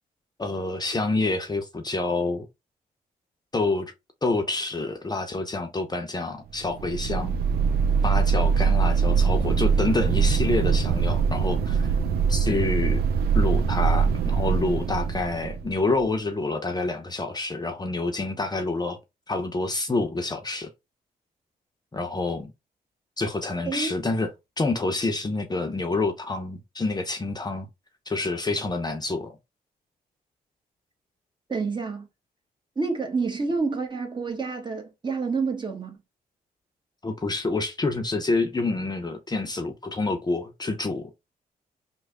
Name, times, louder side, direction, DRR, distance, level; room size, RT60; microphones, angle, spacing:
voice 1, 0.4-2.5 3.5-3.9 4.2-7.4 8.0-11.9 12.3-13.0 13.3-19.0 19.3-20.7 21.9-22.5 23.2-24.3 24.6-27.7 28.1-29.4 37.0-41.1, left 3 dB, 25° left, 0.7 m, -27 dB
sound 1, 6.6-16.0, right 6 dB, 80° right, 0.5 m, -23 dB
voice 2, 31.5-32.1 32.7-36.0, right 4 dB, 30° right, 1.1 m, -28 dB
3.2 x 2.2 x 3.6 m
cardioid pair, 70°, 16 cm